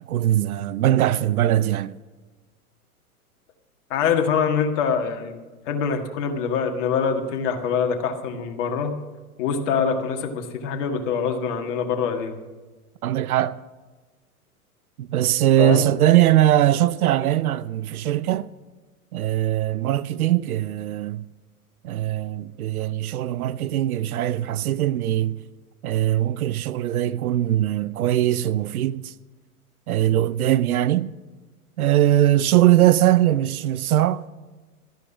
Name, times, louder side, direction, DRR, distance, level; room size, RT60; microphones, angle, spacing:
voice 1, 0.0-1.9 13.0-13.6 15.0-18.5 19.1-21.3 21.8-25.4 25.8-29.1 29.9-31.1 31.8-34.2, right 13 dB, 70° right, 0.7 m, -21 dB
voice 2, 3.9-5.4 5.7-8.9 9.4-12.4 15.6-15.8, left 6 dB, 55° left, 1.9 m, -24 dB
13.0 x 10.5 x 6.0 m
hypercardioid pair, 105°, 45 cm